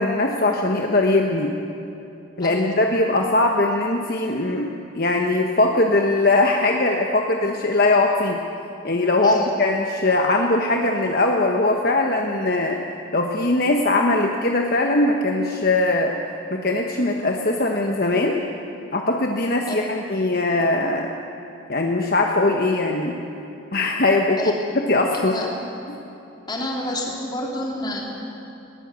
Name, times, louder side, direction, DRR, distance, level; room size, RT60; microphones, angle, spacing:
voice 1, 0.0-1.5 2.4-8.4 8.8-12.8 13.1-16.1 16.5-18.4 18.9-21.1 21.7-23.2 23.7-24.4 24.7-25.3 25.9-26.0, left 2 dB, 50° left, 2 dB, 1.2 m, -20 dB
voice 2, 2.4-2.8 9.2-9.5 19.7-19.8 24.4-24.5 25.1-25.5 26.5-28.0, left 1 dB, 20° left, -1 dB, 3.2 m, -29 dB
21.0 x 19.0 x 8.3 m, 2.9 s
head